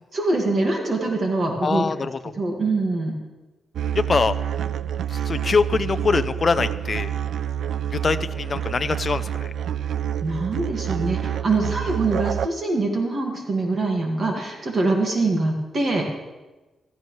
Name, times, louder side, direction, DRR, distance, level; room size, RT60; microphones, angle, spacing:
voice 1, 0.1-1.8 2.4-3.2 10.2-16.1, right 2 dB, 35° right, 1 dB, 1.8 m, -24 dB
voice 2, 1.6-2.2 3.9-4.4 5.1-7.1 7.9-9.5, left 4 dB, 35° left, 11 dB, 0.5 m, -23 dB
sound 1, 3.8-12.5, right 9 dB, 75° right, 0.3 m, -28 dB
16.0 x 13.5 x 3.2 m, 1.1 s
wide cardioid pair, 155°, 0 cm